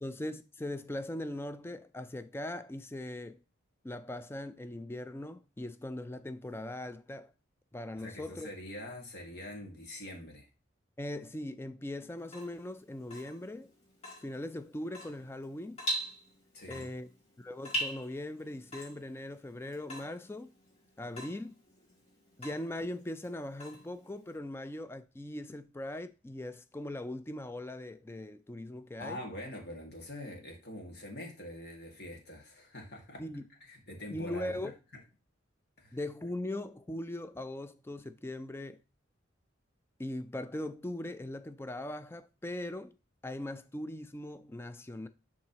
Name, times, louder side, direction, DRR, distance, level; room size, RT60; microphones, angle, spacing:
voice 1, 0.0-3.4 3.8-7.3 7.7-8.5 11.0-13.7 14.2-15.8 16.7-17.1 17.4-20.5 21.0-21.5 22.4-29.2 33.2-33.5 34.1-34.7 35.9-38.8 40.0-42.9 43.2-45.1, left 1 dB, 10° left, 0.4 m, -40 dB
voice 2, 8.0-10.5 16.5-16.9 29.0-33.2 33.6-34.7 35.8-36.0, left 1 dB, 55° left, 2.0 m, -44 dB
Water tap faucet / Drip, 12.2-24.4, equal, 30° left, 2.4 m, -42 dB
10.5 x 3.7 x 2.9 m
head